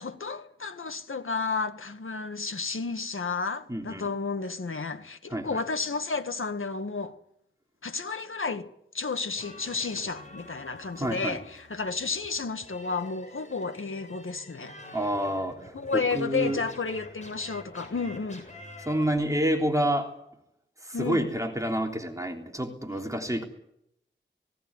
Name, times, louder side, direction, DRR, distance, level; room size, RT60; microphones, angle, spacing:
voice 1, 0.0-7.2 7.8-8.7 8.9-14.7 15.7-18.4 20.9-21.3, left 4 dB, 80° left, 1.7 m, -32 dB
voice 2, 3.7-4.1 5.3-5.6 11.0-11.4 14.9-16.6 18.8-20.1 20.8-23.4, right 1 dB, 15° right, 3.5 m, -28 dB
sound 1, 9.3-19.0, left 1 dB, 35° left, 7.4 m, -47 dB
18.5 x 18.0 x 9.8 m
wide cardioid pair, 75°, 20 cm